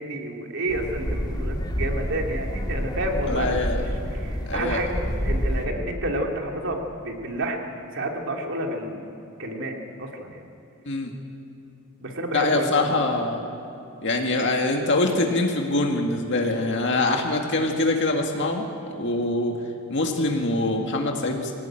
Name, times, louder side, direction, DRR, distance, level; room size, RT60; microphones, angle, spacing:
voice 1, 0.0-7.6 7.9-9.0 9.4-10.5 12.0-12.9, right 1 dB, 60° right, 1 dB, 3.0 m, -30 dB
sound 1, 0.7-5.7, equal, 20° left, 2.2 m, -28 dB
voice 2, 3.3-3.8 4.5-4.8 10.9-11.1 12.3-13.4 14.0-18.7 18.9-19.6 19.9-21.5, left 2 dB, 55° left, 2 dB, 2.0 m, -24 dB
23.0 x 18.0 x 9.1 m, 2.7 s
head